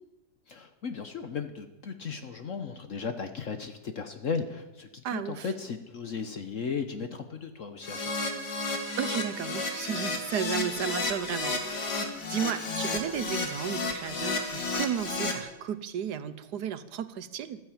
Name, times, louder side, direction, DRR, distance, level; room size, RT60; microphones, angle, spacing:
voice 1, 0.5-8.1, left 5 dB, 55° left, 8 dB, 1.2 m, -36 dB
voice 2, 5.0-5.5 9.0-17.6, right 8 dB, 75° right, 13 dB, 1.4 m, -34 dB
Keyboard (musical), 7.8-15.3, left 3 dB, 75° left, 2.6 m, -32 dB
14.5 x 13.0 x 7.2 m, 1.0 s
omnidirectional pair, 1.8 m